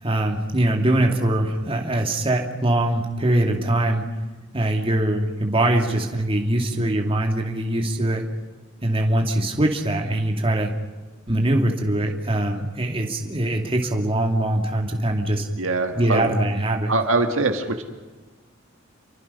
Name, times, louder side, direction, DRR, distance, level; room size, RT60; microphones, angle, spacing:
voice 1, 0.0-4.1 4.5-8.2 8.8-10.7 11.3-15.5 16.0-16.9, right 1 dB, 30° right, 1 dB, 2.4 m, -22 dB
voice 2, 15.6-16.3 16.9-17.8, right 3 dB, 75° right, 5 dB, 2.0 m, -23 dB
29.5 x 23.5 x 5.6 m, 1.3 s
head